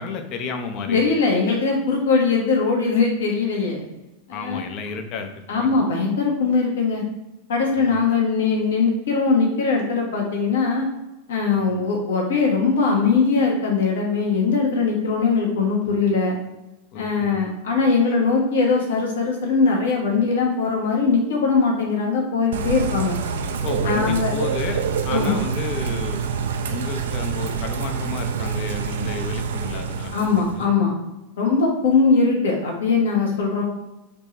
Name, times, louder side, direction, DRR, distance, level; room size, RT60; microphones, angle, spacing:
voice 1, 0.0-1.0 4.3-5.7 7.7-7.9 11.6-11.7 16.9-17.4 23.6-26.2 26.7-30.7, left 4 dB, 40° left, 6 dB, 0.6 m, -32 dB
voice 2, 0.9-3.9 4.3-4.6 5.5-7.0 7.5-10.8 11.3-16.4 16.9-23.2 23.8-24.3 25.1-25.3 30.1-30.9 31.4-33.6, left 4 dB, 60° left, 0 dB, 1.1 m, -21 dB
Bird / Rain, 22.5-30.7, right 6 dB, 60° right, 0.4 m, -26 dB
3.5 x 3.1 x 4.0 m, 0.98 s
figure-of-eight pair, 90°, 0 cm